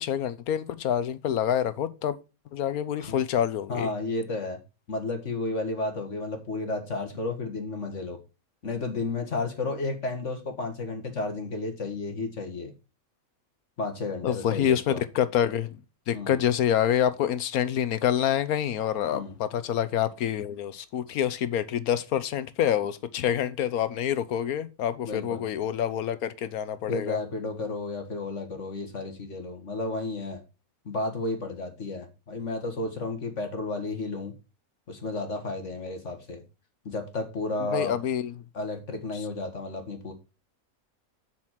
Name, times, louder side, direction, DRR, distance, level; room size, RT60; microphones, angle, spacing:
voice 1, 0.0-2.2 2.5-3.9 14.2-15.8 16.1-27.2 37.7-38.3, left 10 dB, 85° left, 1.3 m, -27 dB
voice 2, 3.7-4.6 4.9-8.2 8.6-12.7 13.8-15.0 16.1-16.4 19.1-19.4 25.0-25.4 26.9-30.4 30.9-34.3 34.9-36.4 36.9-38.0 38.5-40.1, left 2 dB, 55° left, 1.8 m, -32 dB
7.5 x 6.2 x 5.8 m
omnidirectional pair, 1.5 m